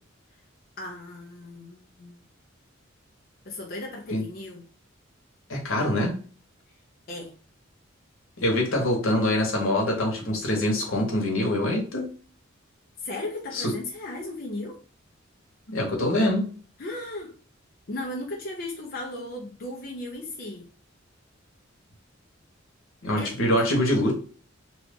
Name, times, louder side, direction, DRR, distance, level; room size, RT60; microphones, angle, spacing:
voice 1, 0.8-2.2 3.4-4.6 7.1-7.4 13.0-14.8 16.8-17.3 17.9-20.7 23.2-23.3, left 2 dB, 45° left, 0.6 m, -36 dB
voice 2, 5.5-6.2 8.4-12.1 13.5-13.7 15.7-16.5 23.0-24.1, left 1 dB, 85° left, 1.0 m, -24 dB
2.9 x 2.3 x 3.6 m
head